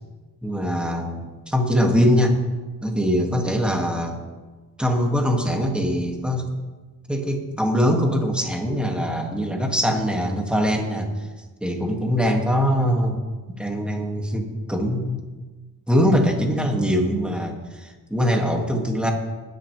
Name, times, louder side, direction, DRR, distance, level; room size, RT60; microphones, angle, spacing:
voice 1, 0.4-2.4 2.8-4.2 4.8-6.5 7.1-11.1 11.6-13.2 13.5-15.2 15.9-19.1, equal, 5° right, 1 dB, 2.1 m, -22 dB
20.5 x 10.5 x 3.3 m, 1.3 s
cardioid pair, 90°, 37 cm